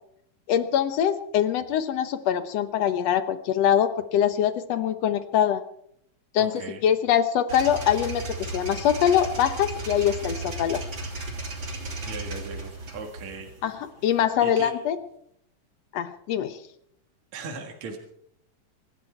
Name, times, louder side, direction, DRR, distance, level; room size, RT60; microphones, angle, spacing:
voice 1, 0.5-5.6 6.3-10.8 13.6-15.0 15.9-16.6, left 9 dB, 65° left, 11 dB, 1.8 m, -23 dB
voice 2, 6.4-6.9 12.0-13.5 14.4-14.7 17.3-18.0, right 4 dB, 60° right, 2 dB, 2.9 m, -38 dB
sound 1, 7.5-14.5, right 2 dB, 35° right, 3.7 m, -35 dB
25.0 x 12.0 x 4.5 m, 0.72 s
omnidirectional pair, 3.9 m